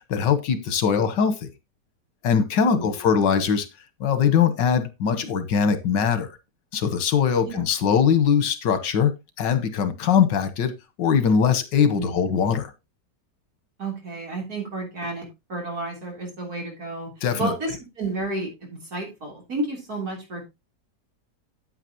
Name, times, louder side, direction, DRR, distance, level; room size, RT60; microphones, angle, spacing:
voice 1, 0.0-1.5 2.2-3.7 4.0-6.3 6.7-9.1 9.4-10.7 11.0-12.7 17.2-17.5, left 7 dB, 85° left, 1.8 m, -21 dB
voice 2, 2.6-3.0 7.4-7.6 11.9-12.2 13.8-20.4, right 2 dB, 55° right, 3.9 m, -32 dB
8.9 x 8.7 x 2.9 m
omnidirectional pair, 1.9 m